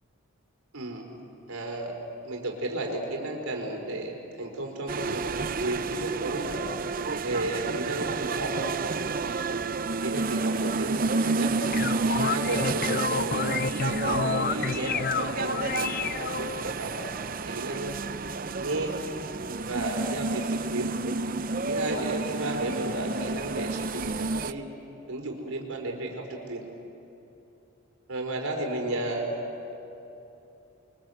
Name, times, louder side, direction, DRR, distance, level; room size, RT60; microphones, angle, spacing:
voice 1, 0.7-1.1 1.5-2.0 2.2-6.6 7.2-8.5 10.0-11.5 12.1-13.4 13.8-16.9 17.5-18.1 18.5-19.0 19.6-20.9 21.7-24.6 25.1-26.6 28.1-29.3, right 2 dB, 85° right, 1 dB, 4.6 m, -33 dB
sound 1, 4.9-24.5, right 3 dB, 40° right, 0.6 m, -30 dB
sound 2, 11.5-16.7, left 5 dB, 45° left, 0.7 m, -30 dB
30.0 x 24.0 x 7.9 m, 2.9 s
head